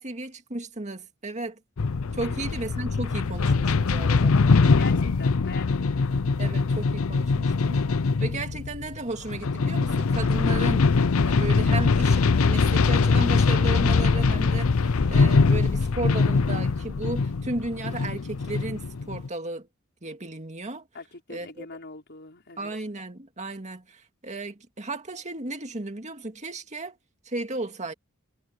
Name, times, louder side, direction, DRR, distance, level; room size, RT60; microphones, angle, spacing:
voice 1, 0.0-1.6 2.1-4.4 6.4-7.8 8.2-10.9 11.2-19.7 20.0-20.9 21.3-21.7 22.6-27.0 27.2-27.9, right 2 dB, 35° right, 2.2 m, -34 dB
sound 1, 1.8-19.3, left 4 dB, 80° left, 0.6 m, -22 dB
voice 2, 2.2-2.5 4.7-6.1 20.9-22.7, left 3 dB, 55° left, 5.0 m, -42 dB
head